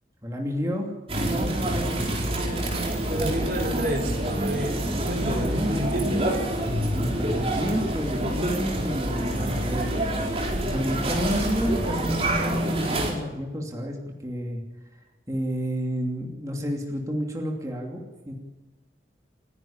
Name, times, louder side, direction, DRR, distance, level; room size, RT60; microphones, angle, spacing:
voice 1, 0.2-2.1 5.3-5.7 6.9-14.6 15.3-18.3, equal, 20° right, 0 dB, 2.8 m, -30 dB
sound 1, 1.1-13.1, right 1 dB, 35° right, 4.4 m, -27 dB
voice 2, 3.1-6.4, equal, 55° right, 3 dB, 3.8 m, -30 dB
30.0 x 11.0 x 8.8 m, 1.1 s
head